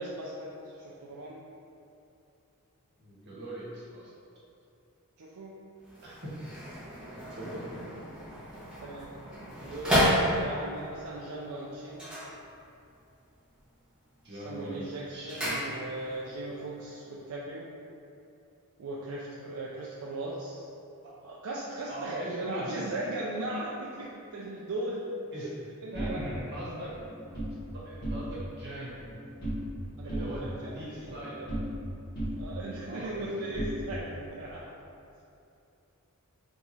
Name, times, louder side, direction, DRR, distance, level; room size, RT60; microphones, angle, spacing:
voice 1, 0.0-1.4 5.2-5.6 8.8-9.1 9.6-12.2 14.3-17.7 18.8-20.7 21.2-25.5 25.8-26.2 29.9-30.7 31.0-31.5 32.4-34.7, right 1 dB, 75° right, -5 dB, 0.4 m, -38 dB
voice 2, 3.0-4.1 6.0-6.4 7.1-8.0 14.2-15.7 21.0-21.1 21.9-22.7 25.3-25.5 25.9-26.9 27.7-29.0 30.0-31.4 32.8-33.3, right 1 dB, 50° right, -7 dB, 1.2 m, -41 dB
sound 1, 5.8-10.8 11.9-13.0 13.3-13.8 14.1-16.2 16.5-16.6, equal, 5° right, 1.1 m, -32 dB
sound 2, 25.9-27.6 27.9-28.6 28.8-29.8 30.1-31.9 32.2-34.3, equal, 45° left, 1.5 m, -36 dB
3.5 x 2.9 x 4.1 m, 2.7 s
head